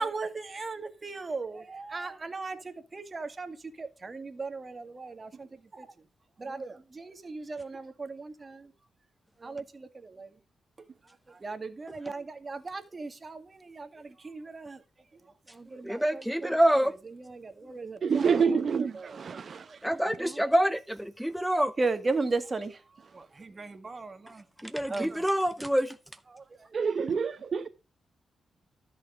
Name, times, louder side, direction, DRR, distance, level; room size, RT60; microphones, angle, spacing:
voice 1, 0.0-5.5 5.7-5.9 6.4-8.7 9.4-10.3 11.4-14.8 15.5-16.6 17.3-18.0 20.2-20.3 21.8-22.8 23.1-24.4 24.9-25.2 26.3-26.4, right 3 dB, 35° right, 1.9 m, -36 dB
voice 2, 15.8-16.9 19.8-21.7 24.6-26.0, equal, ahead, 0.7 m, -26 dB
voice 3, 18.0-19.8 26.7-27.7, right 6 dB, 55° right, 0.8 m, -27 dB
13.0 x 6.4 x 4.9 m
cardioid pair, 75°, 0 cm